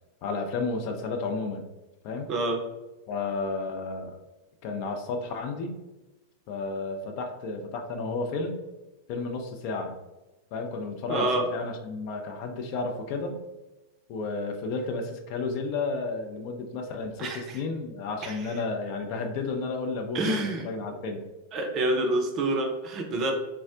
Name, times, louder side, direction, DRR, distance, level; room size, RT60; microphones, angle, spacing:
voice 1, 0.2-1.7 2.0-2.3 3.1-4.2 4.6-5.8 6.5-8.6 9.1-10.0 10.5-13.4 14.1-21.2, left 3 dB, 45° left, 4 dB, 0.4 m, -32 dB
voice 2, 11.1-11.5 17.2-17.6 18.2-18.5 20.1-20.7 21.5-23.3, right 2 dB, 35° right, 4 dB, 0.5 m, -27 dB
3.4 x 2.0 x 2.5 m, 1.1 s
figure-of-eight pair, 90°, 0 cm